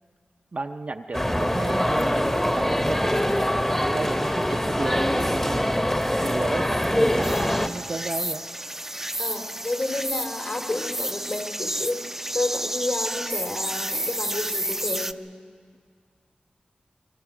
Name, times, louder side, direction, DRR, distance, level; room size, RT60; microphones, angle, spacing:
voice 1, 0.5-5.7 6.2-8.4, right 3 dB, 50° right, 4 dB, 0.6 m, -33 dB
sound 1, 1.1-7.7, equal, 15° left, 1.1 m, -23 dB
sound 2, 7.2-15.1, right 1 dB, 10° right, 0.6 m, -31 dB
voice 2, 9.2-15.2, left 2 dB, 55° left, 3 dB, 2.7 m, -30 dB
25.0 x 22.5 x 5.0 m, 2.1 s
cardioid pair, 45°, 3 cm